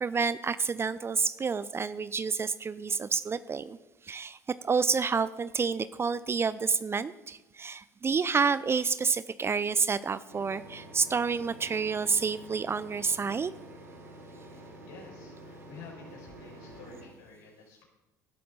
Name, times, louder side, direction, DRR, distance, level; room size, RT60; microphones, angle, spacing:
voice 1, 0.0-3.8 4.1-4.4 4.6-13.5, right 5 dB, 25° right, 16 dB, 0.6 m, -29 dB
sound 1, 10.3-17.1, right 1 dB, 85° right, 4.2 m, -48 dB
voice 2, 14.4-17.9, left 4 dB, 70° left, -2 dB, 6.0 m, -50 dB
19.5 x 12.0 x 4.1 m, 1.0 s
figure-of-eight pair, 60°, 9 cm